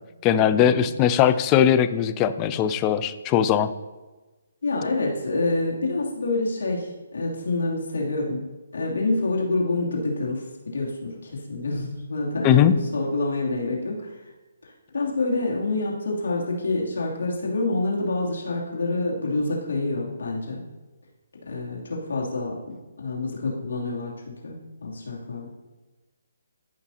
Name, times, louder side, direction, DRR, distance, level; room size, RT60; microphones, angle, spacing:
voice 1, 0.2-3.7 12.4-12.7, left 9 dB, 20° left, 12 dB, 0.4 m, -20 dB
voice 2, 4.6-8.5 8.7-14.1 14.6-20.6 21.5-25.5, left 2 dB, 80° left, -2 dB, 2.8 m, -27 dB
14.0 x 5.9 x 2.8 m, 1.2 s
hypercardioid pair, 160°, 0 cm